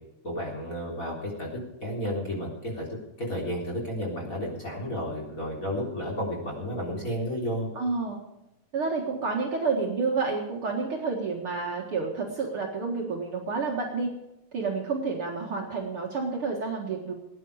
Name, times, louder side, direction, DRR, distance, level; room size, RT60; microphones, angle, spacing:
voice 1, 0.2-1.5 1.8-7.7, equal, 25° left, -2 dB, 3.9 m, -32 dB
voice 2, 7.7-8.2 8.7-14.2 14.5-17.1, right 4 dB, 50° right, 0 dB, 2.3 m, -29 dB
19.0 x 10.0 x 4.9 m, 0.93 s
omnidirectional pair, 3.6 m